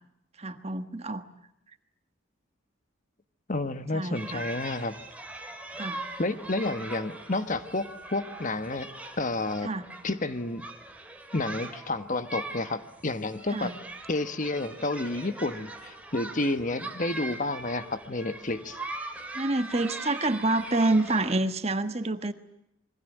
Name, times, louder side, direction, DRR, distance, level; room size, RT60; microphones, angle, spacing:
voice 1, 0.4-1.2 3.9-4.5 5.7-6.0 9.6-9.9 13.5-13.7 19.3-22.3, right 2 dB, 30° right, 10 dB, 1.3 m, -28 dB
voice 2, 3.5-4.9 6.2-8.9 9.2-9.7 10.0-10.6 11.3-13.7 14.1-18.8, left 2 dB, 40° left, 11 dB, 1.3 m, -30 dB
sound 1, 4.1-21.3, right 2 dB, 5° right, 3.1 m, -41 dB
27.0 x 23.0 x 9.1 m, 0.78 s
head